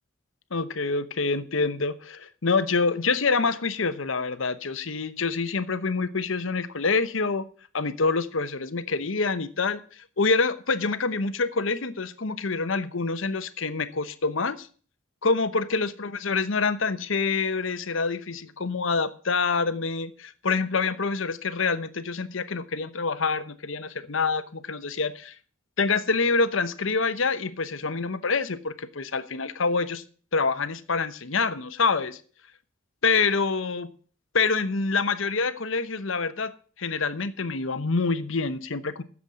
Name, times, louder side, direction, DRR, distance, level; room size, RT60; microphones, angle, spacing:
voice 1, 0.5-7.5 7.7-9.8 10.2-14.7 15.2-25.3 25.8-30.0 30.3-32.2 33.0-33.9 34.3-36.5 36.8-39.0, left 4 dB, 65° left, 12 dB, 1.0 m, -26 dB
10.0 x 7.3 x 8.5 m, 0.43 s
head